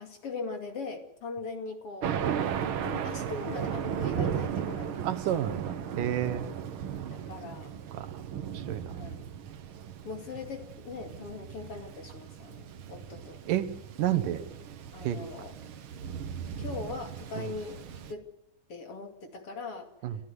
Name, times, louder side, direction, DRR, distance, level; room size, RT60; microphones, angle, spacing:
voice 1, 0.0-2.1 2.8-5.0 7.1-7.7 8.9-9.2 10.0-13.4 14.9-15.5 16.6-17.8 18.1-18.2 18.7-19.9, left 4 dB, 45° left, 5 dB, 3.2 m, -40 dB
Thunder, 2.0-18.1, right 8 dB, 60° right, 1.5 m, -36 dB
voice 2, 5.0-6.5 7.9-8.1 8.4-9.1 13.5-13.7 14.0-14.4 15.0-15.3 17.4-17.5 20.0-20.2, right 11 dB, 80° right, 10 dB, 2.8 m, -30 dB
29.0 x 16.0 x 8.0 m, 0.72 s
omnidirectional pair, 3.8 m